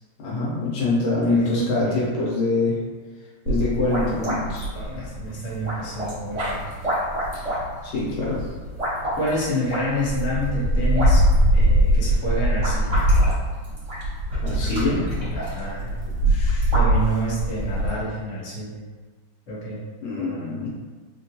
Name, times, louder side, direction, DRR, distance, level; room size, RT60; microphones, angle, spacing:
voice 1, 0.2-2.8 3.5-4.7 7.3-7.5 7.8-8.4 14.4-15.1 16.2-16.7 20.0-20.7, left 3 dB, 75° left, -5 dB, 1.5 m, -25 dB
voice 2, 1.3-1.9 4.7-6.8 9.1-11.2 11.5-13.0 15.3-15.9 16.7-18.8 19.5-19.8 20.2-20.7, equal, 45° left, -8 dB, 1.1 m, -28 dB
sound 1, 3.5-18.0, equal, 25° right, 0.7 m, -31 dB
sound 2, 3.5-9.4 9.9-17.9, right 1 dB, 80° right, 1.4 m, -22 dB
3.5 x 2.3 x 2.6 m, 1.4 s
omnidirectional pair, 2.3 m